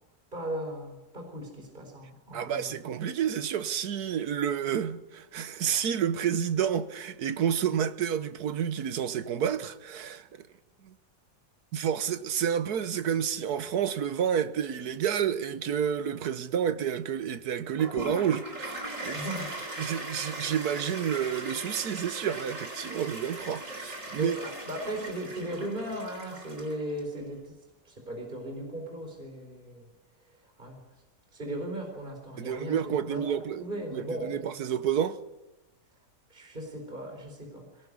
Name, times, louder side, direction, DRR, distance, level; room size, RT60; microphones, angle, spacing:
voice 1, 0.3-2.7 19.1-19.6 24.2-27.6 27.8-29.9 30.3-30.8 31.3-34.4 36.3-37.9, right 1 dB, 30° right, 4.5 m, -37 dB
voice 2, 2.3-10.3 10.8-10.9 11.7-18.7 19.0-19.2 19.8-24.4 32.4-33.6 33.9-35.2, right 8 dB, 70° right, 1.5 m, -29 dB
Toilet flush, 17.8-27.0, right 2 dB, 50° right, 4.3 m, -39 dB
22.0 x 17.5 x 9.7 m
omnidirectional pair, 1.7 m